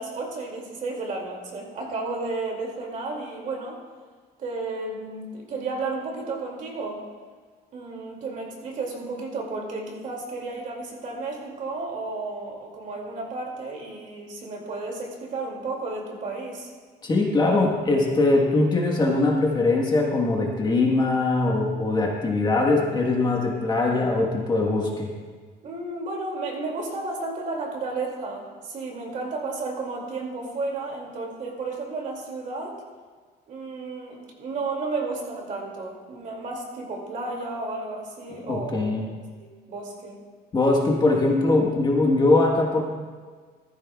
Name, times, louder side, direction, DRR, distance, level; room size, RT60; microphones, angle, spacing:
voice 1, 0.0-3.8 4.4-7.0 7.7-16.7 25.6-32.8 33.5-40.2, right 3 dB, 50° right, -1 dB, 2.4 m, -33 dB
voice 2, 17.0-25.1 38.4-39.0 40.5-42.8, left 2 dB, 25° left, -1 dB, 1.3 m, -21 dB
16.0 x 14.0 x 2.3 m, 1.5 s
cardioid pair, 175°, 18 cm